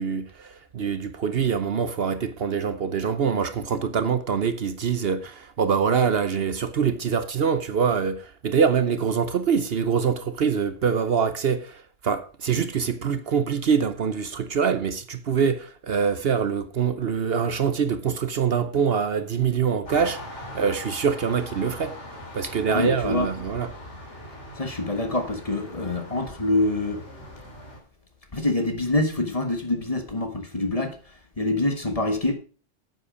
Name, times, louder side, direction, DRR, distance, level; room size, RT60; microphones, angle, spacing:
voice 1, 0.0-22.0 22.3-23.7, right 6 dB, 60° right, 1.0 m, -24 dB
sound 1, 19.9-27.8, left 1 dB, 70° left, 3.4 m, -41 dB
voice 2, 22.7-23.3 24.6-27.0 28.3-32.3, left 2 dB, 30° left, 1.6 m, -26 dB
9.6 x 8.0 x 5.0 m
omnidirectional pair, 1.2 m